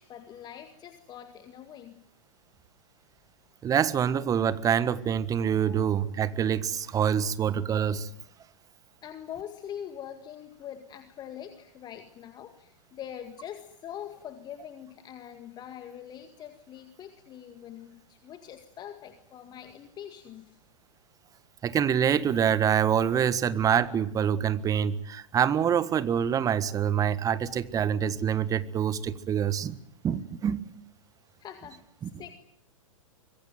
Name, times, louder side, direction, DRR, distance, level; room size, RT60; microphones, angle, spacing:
voice 1, 0.0-2.0 5.6-5.8 9.0-20.6 31.4-32.3, left 10 dB, 25° left, 9 dB, 2.0 m, -43 dB
voice 2, 3.6-8.1 21.6-29.8 30.0-30.6 32.0-32.1, right 8 dB, 20° right, 16 dB, 1.6 m, -26 dB
25.0 x 22.0 x 9.4 m, 0.68 s
figure-of-eight pair, 110°, 17 cm